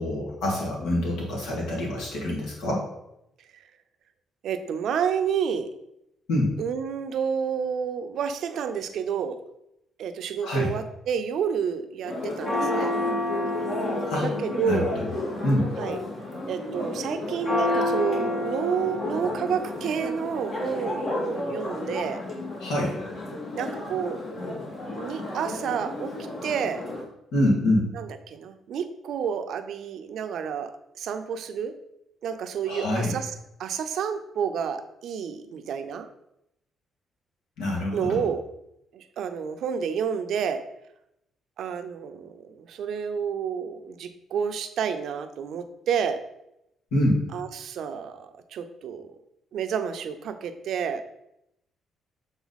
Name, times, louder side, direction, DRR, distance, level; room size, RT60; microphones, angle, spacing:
voice 1, 0.0-2.9 6.3-6.5 10.4-10.7 14.1-14.3 14.7-14.8 15.4-15.7 22.6-23.0 27.3-27.9 32.6-33.2 37.6-38.2 46.9-47.2, left 1 dB, 90° left, -2 dB, 2.1 m, -25 dB
voice 2, 4.4-5.7 6.6-9.4 10.0-13.0 14.2-15.0 15.8-16.0 16.5-22.2 23.6-24.2 24.9-26.1 26.4-26.8 27.9-31.8 32.2-33.3 33.6-36.1 37.9-38.5 38.9-40.7 41.6-46.2 47.3-49.1 49.5-51.0, right 7 dB, 70° right, 9 dB, 0.6 m, -30 dB
Church bell, 12.0-27.0, left 2 dB, 55° left, 2.2 m, -30 dB
7.1 x 3.8 x 4.0 m, 0.83 s
cardioid pair, 90°, 0 cm